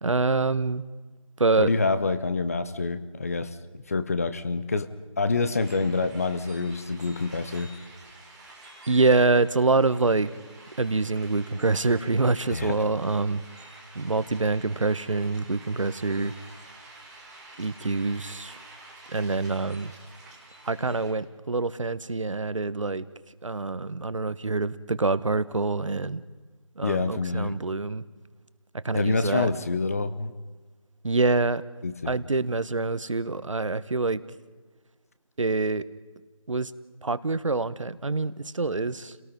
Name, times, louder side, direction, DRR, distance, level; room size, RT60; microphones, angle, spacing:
voice 1, 0.0-0.8 1.4-1.7 8.9-10.3 10.8-13.4 13.9-16.3 17.6-18.6 19.1-19.9 20.6-23.0 23.4-26.2 26.8-28.0 28.8-29.5 31.0-31.6 32.0-34.2 35.4-35.8 36.5-36.7 37.0-39.2, right 3 dB, 65° right, 15 dB, 1.2 m, -25 dB
voice 2, 1.6-3.5 3.9-4.9 5.2-7.7 12.5-12.8 26.8-27.6 28.9-30.3 31.8-32.2, left 3 dB, 25° left, 11 dB, 1.0 m, -27 dB
sound 1, 5.5-21.1, right 2 dB, 5° right, 2.0 m, -49 dB
30.0 x 18.5 x 5.3 m, 1.3 s
figure-of-eight pair, 170°, 17 cm